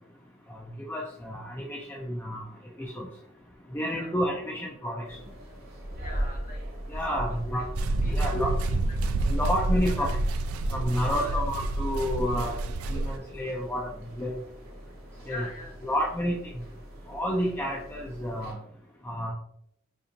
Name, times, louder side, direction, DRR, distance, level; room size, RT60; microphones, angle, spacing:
voice 1, 0.8-2.5 2.8-3.1 3.7-5.0 6.9-7.7 8.1-8.5 9.3-10.1 10.7-12.6 12.9-13.9 14.2-14.3 15.3-15.4 15.8-16.4 17.1-18.6 19.0-19.3, equal, 10° left, -1 dB, 0.3 m, -30 dB
sound 1, 5.0-18.5, right 1 dB, 45° right, 1.1 m, -39 dB
voice 2, 6.0-7.6 8.0-10.1 10.6-11.4 15.2-15.9, left 2 dB, 40° left, 1 dB, 0.9 m, -45 dB
sound 2, 7.8-13.2, right 2 dB, 75° right, 0.3 m, -28 dB
5.1 x 2.6 x 2.8 m, 0.75 s
head